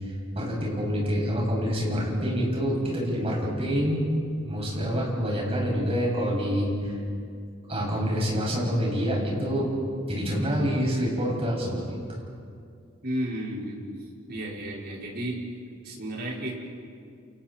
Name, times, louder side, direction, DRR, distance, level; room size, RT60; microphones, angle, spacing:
voice 1, 0.0-4.0 4.4-6.9 7.7-9.7 10.1-12.2, equal, 30° right, -3 dB, 7.0 m, -27 dB
voice 2, 13.0-13.8 14.3-15.4 15.8-16.5, right 1 dB, 50° right, -3 dB, 4.9 m, -32 dB
29.5 x 28.5 x 4.5 m, 2.3 s
head